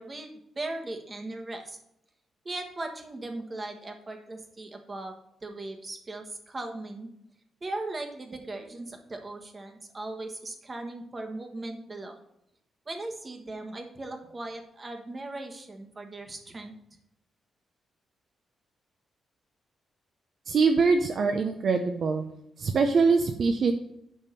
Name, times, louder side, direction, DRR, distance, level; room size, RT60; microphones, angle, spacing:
voice 1, 0.0-1.8 2.4-5.1 5.4-7.1 7.6-12.2 12.9-16.7, right 2 dB, 20° right, 4 dB, 1.3 m, -38 dB
voice 2, 20.5-22.3 22.6-23.7, right 4 dB, 45° right, 6 dB, 0.7 m, -23 dB
10.5 x 3.7 x 7.5 m, 0.79 s
wide cardioid pair, 175°, 0 cm